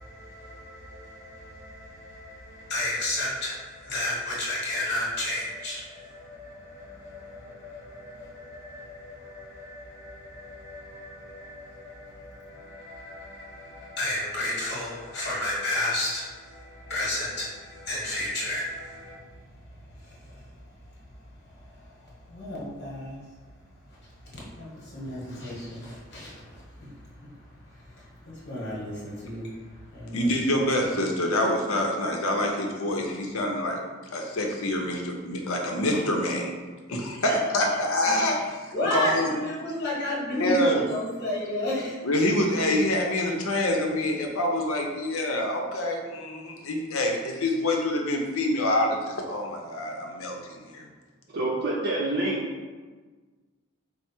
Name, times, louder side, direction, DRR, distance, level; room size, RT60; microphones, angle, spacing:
voice 1, 0.0-19.2 20.0-20.4 21.5-22.0 22.3-23.2 24.3-26.9 27.2-27.3 27.8-29.5 29.8-30.2 37.2-37.4 38.0-38.1 38.7-41.9, left 1 dB, 50° left, -5 dB, 1.1 m, -33 dB
voice 2, 30.1-33.8 34.1-36.5 36.9-39.3 40.4-40.8 42.0-50.8, left 1 dB, 80° left, 2 dB, 0.6 m, -26 dB
voice 3, 51.3-52.4, right 2 dB, 50° right, -5 dB, 0.6 m, -27 dB
4.5 x 2.0 x 4.3 m, 1.4 s
head